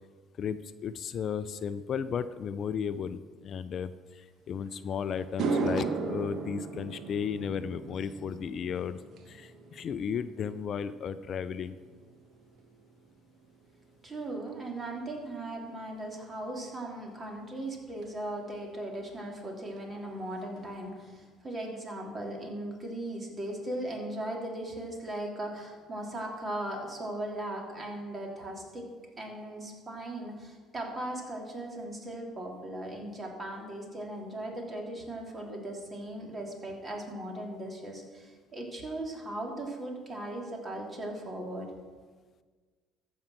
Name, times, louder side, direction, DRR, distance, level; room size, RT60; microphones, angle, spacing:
voice 1, 0.4-9.0 9.3-11.8, left 7 dB, 50° left, 13 dB, 0.4 m, -34 dB
sound 1, 4.7-4.8 5.2-13.7 14.0-14.4 18.0-18.1 19.8-19.9 20.1-20.3 20.5-21.1, right 4 dB, 60° right, 1.3 m, -37 dB
voice 2, 14.0-28.9 29.2-41.7, right 1 dB, 30° right, 0 dB, 3.1 m, -38 dB
14.0 x 5.4 x 6.2 m, 1.5 s
hypercardioid pair, 65°, 0 cm